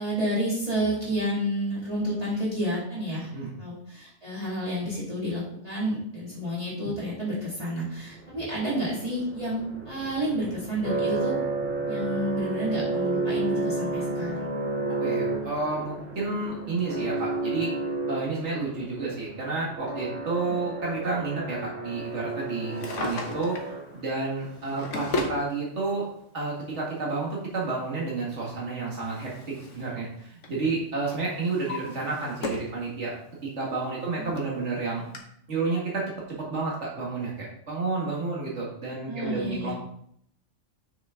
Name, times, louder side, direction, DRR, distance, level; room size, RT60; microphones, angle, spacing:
voice 1, 0.0-3.3 3.6-11.3 11.9-14.5 34.2-34.3 39.1-39.7, equal, 30° right, -8 dB, 2.5 m, -30 dB
sound 1, 8.0-24.2, right 3 dB, 50° right, 2.8 m, -32 dB
voice 2, 15.0-17.7 18.1-23.6 23.9-26.0 26.3-33.1 33.4-35.1 35.5-39.7, right 3 dB, 65° right, -5 dB, 2.4 m, -30 dB
Drawer open or close, 22.6-23.7 24.5-25.4 26.5-26.6 28.4-29.9 30.2-30.6 31.1-32.8 33.2-33.3 34.0-34.1 34.4-34.5 35.1-35.2, left 2 dB, 75° left, 1.5 m, -35 dB
7.1 x 6.3 x 3.9 m, 0.69 s
omnidirectional pair, 1.3 m